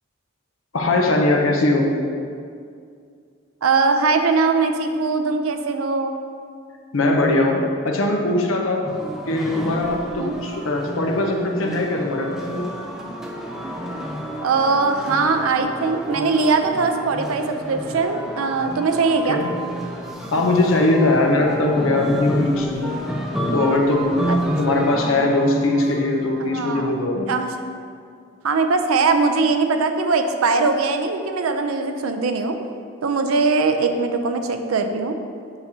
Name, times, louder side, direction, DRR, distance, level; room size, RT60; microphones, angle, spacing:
voice 1, 0.7-1.9 6.9-8.8 9.3-12.7 19.3-19.5 20.3-23.0 23.5-24.3 24.6-27.3, left 2 dB, 75° left, 1 dB, 0.8 m, -20 dB
voice 2, 3.6-6.2 10.2-10.3 14.4-19.4 24.3-24.4 26.4-26.9 27.3-27.5 28.4-32.6 33.0-35.2, right 4 dB, 90° right, 6 dB, 0.5 m, -21 dB
sound 1, 8.8-26.7, equal, ahead, 0.4 m, -30 dB
6.9 x 6.6 x 2.8 m, 2.3 s
head